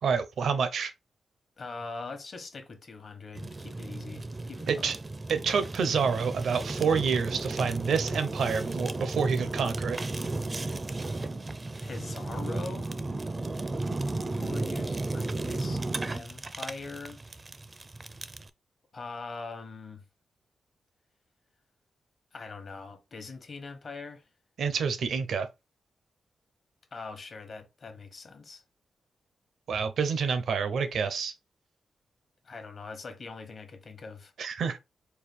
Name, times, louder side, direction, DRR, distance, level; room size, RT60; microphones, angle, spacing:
voice 1, 0.0-0.9 4.7-4.9 5.3-10.0 24.6-25.5 29.7-31.3 34.4-34.8, right 6 dB, 80° right, 0.7 m, -28 dB
voice 2, 1.6-4.9 11.8-13.0 14.3-15.8 16.1-17.2 18.9-20.0 22.3-24.3 26.9-28.6 32.4-34.3, left 4 dB, 55° left, 1.1 m, -42 dB
Fire, 3.3-18.5, right 2 dB, 30° right, 0.4 m, -34 dB
4.5 x 2.3 x 3.5 m
cardioid pair, 95°, 0 cm